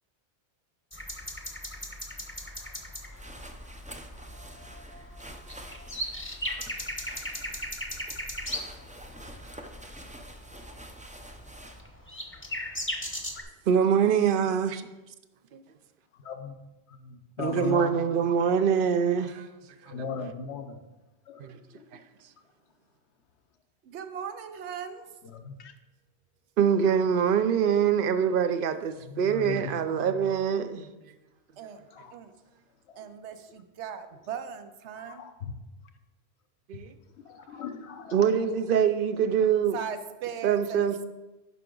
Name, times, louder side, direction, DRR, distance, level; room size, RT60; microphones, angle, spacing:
sound 1, 0.9-13.4, equal, 10° left, 0.8 m, -38 dB
sound 2, 3.1-11.8, right 1 dB, 10° right, 0.4 m, -46 dB
voice 1, 13.7-14.9 15.5-15.6 17.4-19.5 19.8-19.9 21.4-21.6 21.9-22.0 26.6-31.1 36.7-36.9 38.1-39.8 40.4-41.0, right 7 dB, 60° right, 10 dB, 0.7 m, -24 dB
voice 2, 16.1-16.6 16.9-18.0 19.8-20.8 21.3-22.0 25.2-25.7 28.9-30.3 31.7-32.2 32.9-33.1 35.0-35.6 36.7-36.9 37.1-38.2, left 5 dB, 75° left, 7 dB, 1.1 m, -39 dB
voice 3, 23.8-25.1 31.6-31.8 32.1-32.3 33.0-35.2 39.7-40.9, right 7 dB, 80° right, 9 dB, 1.0 m, -38 dB
11.0 x 5.8 x 3.8 m, 1.1 s
omnidirectional pair, 1.1 m